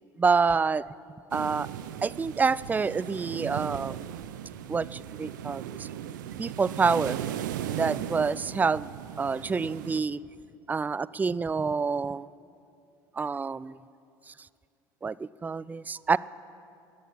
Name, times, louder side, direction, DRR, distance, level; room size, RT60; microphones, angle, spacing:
voice 1, 0.2-0.8 1.3-1.7 2.0-4.0 4.7-5.9 6.4-7.2 7.7-8.9 9.2-10.2 10.7-12.3 13.2-13.8 14.3-14.4 15.0-16.2, right 5 dB, 15° right, 20 dB, 0.3 m, -27 dB
sound 1, 1.3-10.0, right 11 dB, 90° right, 0.6 m, -37 dB
15.5 x 10.0 x 8.5 m, 2.5 s
hypercardioid pair, 75°, 10 cm